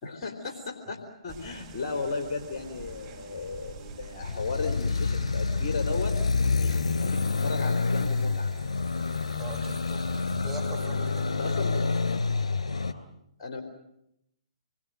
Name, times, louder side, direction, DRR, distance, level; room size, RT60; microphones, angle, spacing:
voice 1, 0.0-6.1 6.6-8.5 11.3-11.8 13.4-13.6, left 4 dB, 45° left, 3 dB, 4.0 m, -35 dB
sound 1, 1.3-12.4, right 4 dB, 30° right, 6.9 m, -48 dB
sound 2, 4.2-12.9, left 4 dB, 70° left, 2.9 m, -28 dB
voice 2, 9.4-12.0, right 3 dB, 5° right, -4 dB, 7.4 m, -42 dB
28.0 x 22.5 x 7.8 m, 0.80 s
figure-of-eight pair, 130°, 3 cm